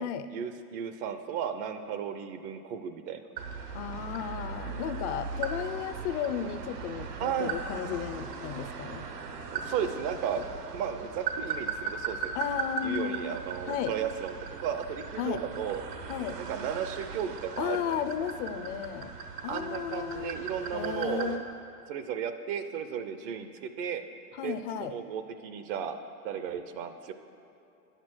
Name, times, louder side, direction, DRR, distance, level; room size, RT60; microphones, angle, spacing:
voice 1, 0.0-3.2 7.2-7.5 9.5-10.4 10.7-12.3 12.8-15.8 16.4-18.0 19.5-21.4 21.9-24.0 24.4-26.0 26.2-27.1, right 8 dB, 40° right, 9 dB, 0.4 m, -34 dB
sound 1, 3.4-21.4, right 5 dB, 90° right, 1.2 m, -38 dB
voice 2, 3.7-9.1 12.3-13.2 13.6-13.9 15.2-15.4 16.1-16.4 17.6-19.1 19.4-20.4 20.7-21.4 24.3-24.9, left 9 dB, 50° left, 11 dB, 0.6 m, -34 dB
9.9 x 6.7 x 6.0 m, 2.8 s
supercardioid pair, 135°, 47 cm